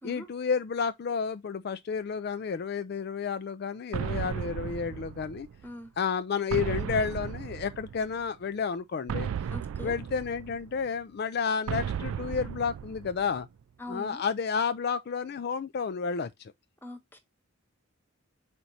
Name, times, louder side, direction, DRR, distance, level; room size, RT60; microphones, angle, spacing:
voice 1, 0.0-5.5 6.0-9.3 9.8-13.5 13.9-16.5, left 6 dB, 50° left, 0.3 m, -31 dB
sound 1, 3.9-5.7 6.5-8.2 9.1-10.9 11.7-13.5, right 8 dB, 75° right, 0.3 m, -35 dB
voice 2, 9.5-10.0 13.8-14.2 16.8-17.2, left 1 dB, 10° left, 1.0 m, -42 dB
5.8 x 4.4 x 4.0 m
head